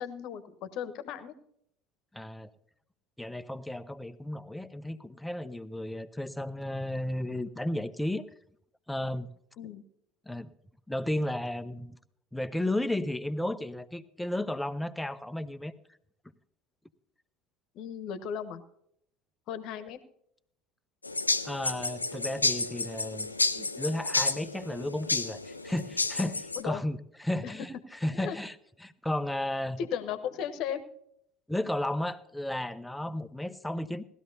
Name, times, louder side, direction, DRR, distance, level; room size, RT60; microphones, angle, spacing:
voice 1, 0.0-1.3 9.6-9.8 17.7-18.6 19.5-20.0 26.6-26.8 27.4-27.7 28.1-28.4 29.8-30.9, left 8 dB, 50° left, 11 dB, 1.1 m, -36 dB
voice 2, 2.1-2.5 3.2-8.3 8.9-9.3 10.3-10.5 10.9-12.0 12.3-15.7 21.4-27.7 28.0-28.5 28.8-29.8 31.5-34.0, left 1 dB, 5° left, 12 dB, 0.7 m, -33 dB
sound 1, 21.0-26.6, left 3 dB, 85° left, 0.4 m, -31 dB
18.5 x 13.0 x 2.7 m, 0.72 s
figure-of-eight pair, 65°, 0 cm